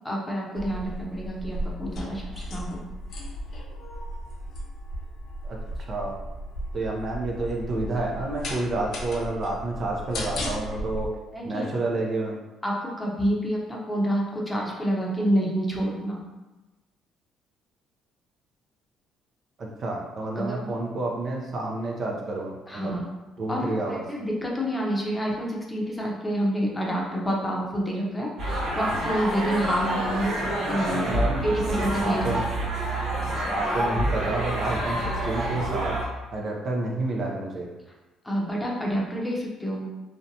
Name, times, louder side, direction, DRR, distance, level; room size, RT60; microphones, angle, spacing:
voice 1, 0.0-2.8 11.3-11.7 12.6-16.2 20.4-20.7 22.7-23.1 23.5-30.3 30.7-31.1 31.4-32.4 38.2-39.9, equal, 15° left, -3 dB, 0.7 m, -28 dB
sound 1, 0.6-11.1, equal, 60° left, 0.5 m, -35 dB
voice 2, 6.7-11.1 11.4-12.4 19.6-22.9 23.4-24.0 31.1-31.4 32.0-32.4 33.5-36.0 36.3-37.7, right 2 dB, 50° right, -1 dB, 0.5 m, -29 dB
sound 2, 28.4-36.0, right 1 dB, 70° right, 1.0 m, -27 dB
2.6 x 2.1 x 2.7 m, 1.1 s
supercardioid pair, 70°, 0 cm